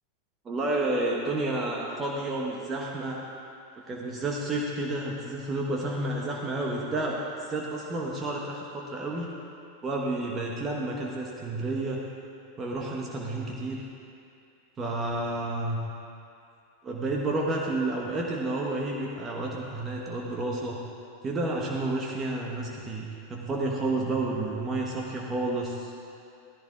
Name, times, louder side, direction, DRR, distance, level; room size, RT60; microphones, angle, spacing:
voice 1, 0.4-3.2 3.9-7.2 7.5-9.3 9.8-12.0 12.6-13.8 14.8-15.8 16.8-20.8 21.2-25.9, right 2 dB, 25° right, -2 dB, 1.3 m, -30 dB
16.5 x 14.5 x 2.5 m, 2.6 s
figure-of-eight pair, 85°, 0 cm